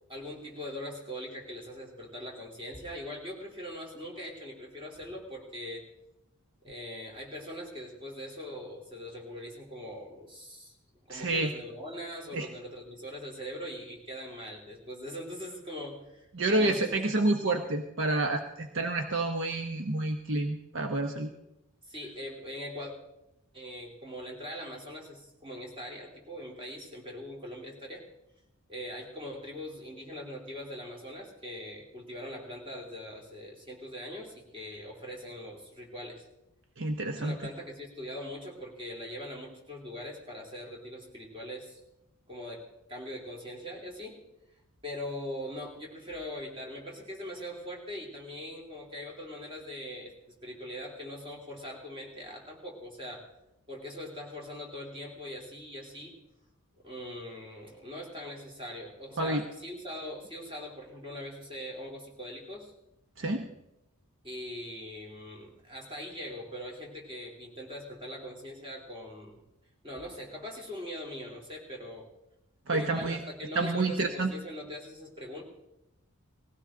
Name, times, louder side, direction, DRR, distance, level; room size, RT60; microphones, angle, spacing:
voice 1, 0.1-5.8 6.6-10.8 11.1-16.9 21.9-22.9 23.5-28.0 28.7-36.2 37.2-41.8 42.3-44.2 44.8-50.1 50.4-53.3 53.7-56.2 56.8-62.7 64.2-69.4 69.8-72.1 72.7-75.5, equal, 25° right, -1 dB, 3.2 m, -41 dB
voice 2, 11.1-11.5 12.3-12.5 16.3-21.3 36.8-37.4 59.2-59.4 63.2-63.5 72.7-73.2 73.5-74.3, right 2 dB, 55° right, 5 dB, 0.9 m, -29 dB
19.0 x 16.0 x 3.8 m, 0.90 s
head